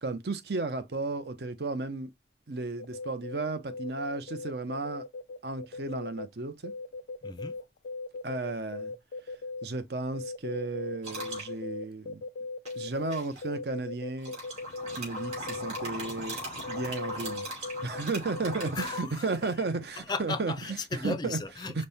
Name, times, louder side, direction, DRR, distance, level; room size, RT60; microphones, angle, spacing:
voice 1, 0.0-2.1 2.5-5.0 5.4-6.7 8.2-8.9 9.6-12.2 12.7-14.3 14.9-16.4 16.7-17.4 17.8-20.5 20.9-21.4 21.7-21.9, right 3 dB, 70° right, 0.7 m, -33 dB
sound 1, 2.8-6.3 6.6-9.7 10.1-15.9 16.6-18.0 18.3-19.0, left 3 dB, 85° left, 0.4 m, -38 dB
voice 2, 7.2-7.6 18.8-19.2 20.0-21.9, left 4 dB, 25° left, 0.4 m, -36 dB
sound 2, 11.0-11.5 12.6-13.4 14.2-19.5, right 1 dB, 40° right, 2.8 m, -39 dB
5.3 x 2.1 x 4.1 m
head